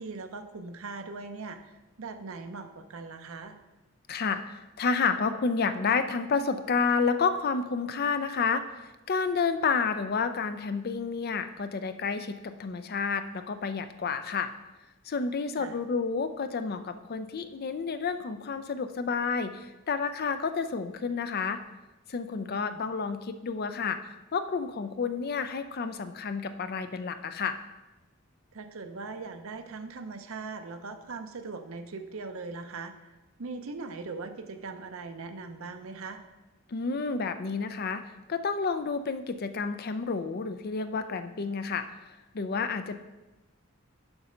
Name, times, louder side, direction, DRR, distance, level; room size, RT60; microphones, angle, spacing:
voice 1, 0.0-1.6 2.0-3.5 15.6-15.8 22.5-22.8 28.5-32.9 33.4-36.2, right 4 dB, 70° right, 7 dB, 0.7 m, -40 dB
voice 2, 4.1-14.5 15.1-21.6 22.1-27.6 36.7-38.0 38.3-41.9 42.3-43.0, left 5 dB, 45° left, 10 dB, 0.4 m, -30 dB
7.1 x 5.4 x 5.0 m, 1.1 s
head